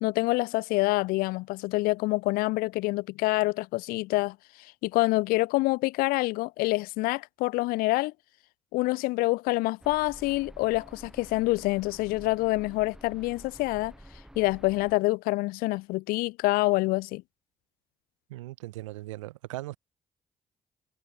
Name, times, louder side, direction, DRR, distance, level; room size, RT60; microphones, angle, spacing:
voice 1, 0.0-4.4 4.8-8.1 8.7-13.9 14.4-17.2, left 22 dB, 70° left, 0.4 m, -26 dB
sound 1, 9.8-15.0, equal, 5° right, 2.1 m, -49 dB
voice 2, 18.3-19.8, right 18 dB, 85° right, 0.5 m, -38 dB
hypercardioid pair, 45°, 16 cm